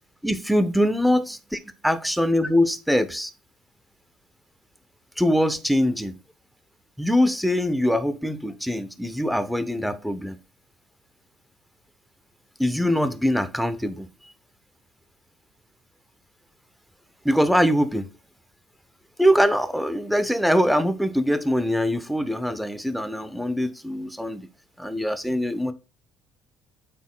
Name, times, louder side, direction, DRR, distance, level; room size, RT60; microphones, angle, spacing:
voice 1, 0.2-1.4 1.8-3.3 5.2-6.2 7.0-10.4 12.6-14.3 17.2-18.1 19.2-24.5 24.8-25.7, equal, ahead, 0.6 m, -23 dB
12.0 x 4.2 x 2.2 m
cardioid pair, 115°, 0 cm